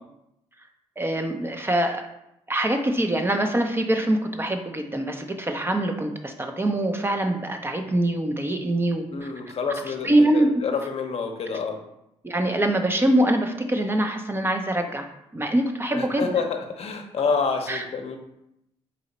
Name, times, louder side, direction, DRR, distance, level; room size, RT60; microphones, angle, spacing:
voice 1, 1.0-2.0 2.5-9.1 9.9-10.6 12.2-15.1 15.3-16.3 17.7-17.8, right 1 dB, 20° right, 5 dB, 0.6 m, -24 dB
voice 2, 9.1-11.8 15.9-18.2, left 5 dB, 55° left, 4 dB, 0.7 m, -28 dB
4.1 x 2.8 x 4.1 m, 0.83 s
cardioid pair, 70°, 12 cm